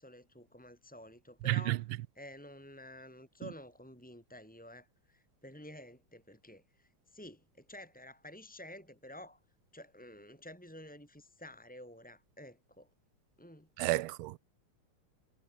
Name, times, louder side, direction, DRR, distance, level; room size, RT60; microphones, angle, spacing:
voice 1, 0.0-1.8 2.1-9.4 9.7-12.9 13.4-13.7, left 1 dB, 5° left, 6.5 m, -51 dB
voice 2, 1.5-1.8 13.8-14.4, right 16 dB, 85° right, 1.5 m, -31 dB
omnidirectional pair, 2.4 m